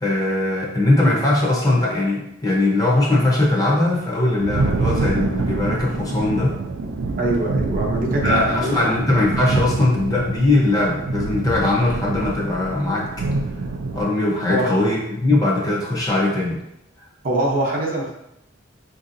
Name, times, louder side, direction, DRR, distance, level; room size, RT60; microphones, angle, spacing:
voice 1, 0.0-6.6 8.2-13.3 13.9-16.6, left 2 dB, 20° left, -4 dB, 0.6 m, -20 dB
Thunder, 4.0-14.0, right 3 dB, 75° right, 0.4 m, -26 dB
voice 2, 7.2-8.9 14.5-14.8 17.2-18.1, right 1 dB, 45° right, -2 dB, 0.7 m, -23 dB
4.7 x 2.7 x 2.6 m, 0.86 s
head